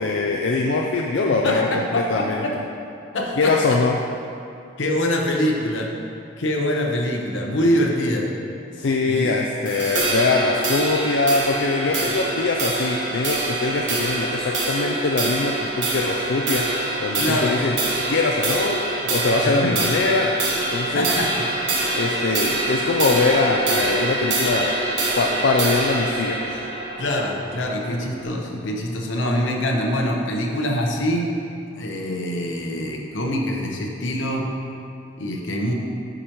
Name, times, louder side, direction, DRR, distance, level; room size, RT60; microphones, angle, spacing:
voice 1, 0.0-2.4 3.4-4.0 8.8-16.6 17.0-17.8 18.1-20.3 20.7-21.1 21.9-24.7 25.2-26.6, left 3 dB, 70° left, 0 dB, 0.4 m, -22 dB
voice 2, 1.3-2.6 3.1-3.8 4.8-5.9 6.4-8.3 9.1-9.3 11.8-12.1 17.2-17.6 19.4-19.8 20.9-21.4 27.0-31.4 31.8-34.5 35.2-35.7, left 1 dB, 90° left, 0 dB, 0.9 m, -24 dB
sound 1, 9.7-28.3, right 2 dB, 80° right, 1.3 m, -25 dB
9.7 x 5.0 x 3.0 m, 2.6 s
head